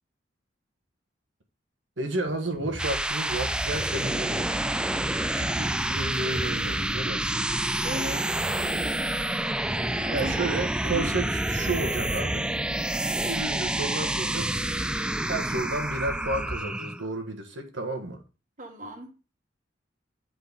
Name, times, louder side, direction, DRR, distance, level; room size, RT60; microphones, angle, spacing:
voice 1, 2.0-4.5 5.2-7.4 10.1-12.5 13.2-14.6 15.3-18.2, right 2 dB, 90° right, 1.4 m, -32 dB
sound 1, 2.5-17.1, right 1 dB, 5° right, 0.3 m, -28 dB
voice 2, 7.8-8.3 9.7-10.6 10.9-11.1 18.6-19.2, right 1 dB, 45° right, 1.5 m, -36 dB
7.7 x 5.1 x 4.0 m
head